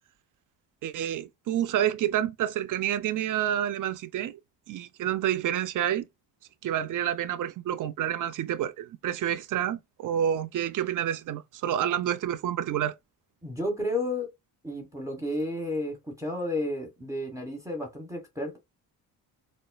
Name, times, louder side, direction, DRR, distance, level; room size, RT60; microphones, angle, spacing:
voice 1, 0.8-4.4 4.7-6.0 6.6-13.0, right 10 dB, 45° right, 0.5 m, -28 dB
voice 2, 13.4-14.3 14.6-18.6, left 1 dB, 5° right, 1.2 m, -32 dB
4.1 x 2.0 x 2.2 m
cardioid pair, 80°, 43 cm